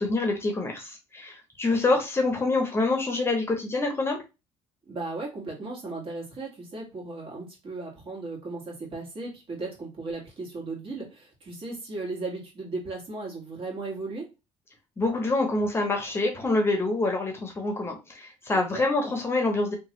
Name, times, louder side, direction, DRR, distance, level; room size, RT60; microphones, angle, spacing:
voice 1, 0.0-4.2 15.0-19.7, left 2 dB, 20° left, 3 dB, 0.7 m, -26 dB
voice 2, 4.8-14.3 18.5-18.8, right 3 dB, 45° right, -2 dB, 1.6 m, -36 dB
2.9 x 2.3 x 2.9 m, 0.27 s
cardioid pair, 105°, 12 cm